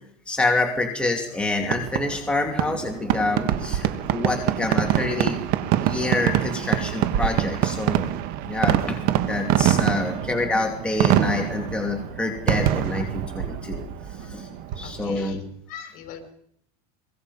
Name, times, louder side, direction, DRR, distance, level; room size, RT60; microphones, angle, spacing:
voice 1, 0.3-5.4 5.8-8.1 8.4-9.0 9.3-13.8 14.2-14.5 14.8-15.4, left 2 dB, 5° left, 2 dB, 2.8 m, -27 dB
Fireworks, 1.6-15.2, right 11 dB, 55° right, 1.7 m, -25 dB
voice 2, 14.8-15.4 15.7-16.3, left 7 dB, 50° left, 6 dB, 5.3 m, -42 dB
24.0 x 23.5 x 5.6 m, 0.68 s
supercardioid pair, 145°, 19 cm